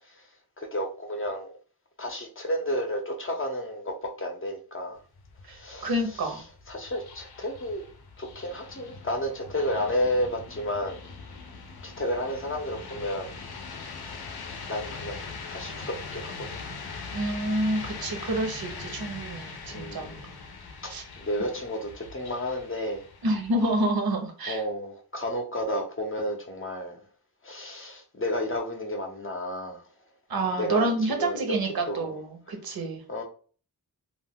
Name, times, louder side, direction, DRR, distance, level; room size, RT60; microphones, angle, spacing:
voice 1, 0.6-1.5 2.0-5.0 5.5-5.9 6.7-7.9 8.2-11.0 11.8-13.3 14.7-15.2 15.5-16.6 19.7-20.2 21.2-23.0 24.5-27.0 27.4-29.8 30.6-30.9 31.2-31.5 31.9-32.1 33.1-33.2, left 1 dB, 35° left, 3 dB, 0.6 m, -31 dB
sound 1, 5.0-23.9, left 4 dB, 75° left, 0.6 m, -42 dB
voice 2, 5.8-6.4 17.1-20.1 20.9-21.0 23.2-24.6 30.3-33.0, right 1 dB, 70° right, 4 dB, 0.8 m, -28 dB
2.4 x 2.2 x 3.5 m, 0.41 s
wide cardioid pair, 115°, 38 cm